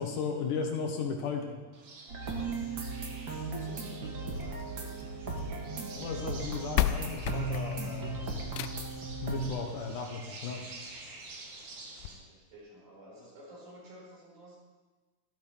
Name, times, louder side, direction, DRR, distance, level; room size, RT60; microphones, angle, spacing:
voice 1, 0.0-1.6 3.4-3.8 6.0-8.4 9.2-10.7, left 5 dB, 65° left, 3 dB, 2.5 m, -36 dB
sound 1, 1.7-12.1, right 3 dB, 80° right, 4.5 m, -49 dB
sound 2, 2.1-9.5, right 3 dB, 40° right, 2.0 m, -37 dB
sound 3, 4.4-5.6 6.4-6.5 6.7-9.0 10.4-10.5 11.0-11.1 11.3-11.4 12.0-12.1, left 13 dB, 80° left, 2.1 m, -33 dB
voice 2, 4.7-5.0 12.0-14.6, equal, 65° right, -3 dB, 6.5 m, -52 dB
14.5 x 14.0 x 5.1 m, 1.3 s
omnidirectional pair, 4.6 m